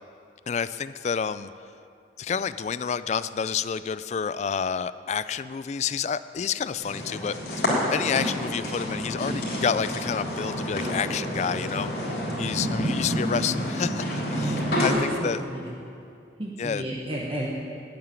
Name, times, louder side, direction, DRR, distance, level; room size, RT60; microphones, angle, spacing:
voice 1, 0.5-1.5 2.2-12.1 12.4-15.4 16.6-16.8, left 6 dB, 40° left, 15 dB, 0.3 m, -29 dB
sound 1, 6.8-14.9, equal, 60° left, 3.7 m, -28 dB
voice 2, 14.4-15.6 16.4-17.5, right 1 dB, 30° right, -4 dB, 1.1 m, -33 dB
8.9 x 8.8 x 9.1 m, 2.5 s
head